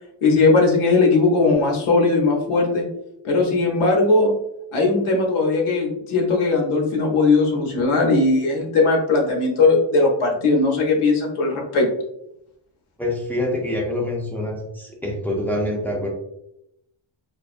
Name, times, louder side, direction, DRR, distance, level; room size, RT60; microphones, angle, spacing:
voice 1, 0.2-2.8 3.2-4.3 4.7-11.9, left 3 dB, 90° left, 0 dB, 0.8 m, -18 dB
voice 2, 13.0-16.1, left 1 dB, 5° left, -3 dB, 0.4 m, -25 dB
2.5 x 2.2 x 2.4 m, 0.79 s
wide cardioid pair, 135°, 49 cm